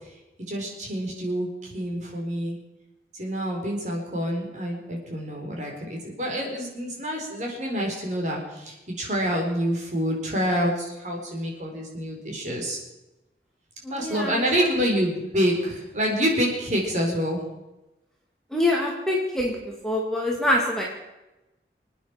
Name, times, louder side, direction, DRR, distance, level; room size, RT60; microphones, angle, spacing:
voice 1, 0.5-2.6 3.2-12.8 13.9-17.4, equal, 40° right, 0 dB, 4.4 m, -27 dB
voice 2, 13.9-14.4 18.5-19.6 19.8-20.8, left 1 dB, 5° left, -2 dB, 2.2 m, -25 dB
26.5 x 9.2 x 5.9 m, 0.97 s
head